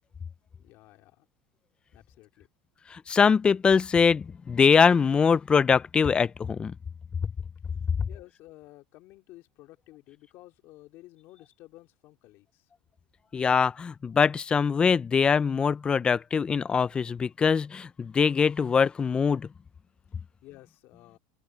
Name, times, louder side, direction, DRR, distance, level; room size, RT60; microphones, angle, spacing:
voice 1, 0.6-1.3 1.9-2.5 8.1-12.7 20.4-21.2, left 18 dB, 55° left, 2.9 m, -52 dB
voice 2, 2.9-6.7 7.2-7.3 13.3-19.5, left 6 dB, 20° left, 0.5 m, -23 dB
open air
supercardioid pair, 125°, 5 cm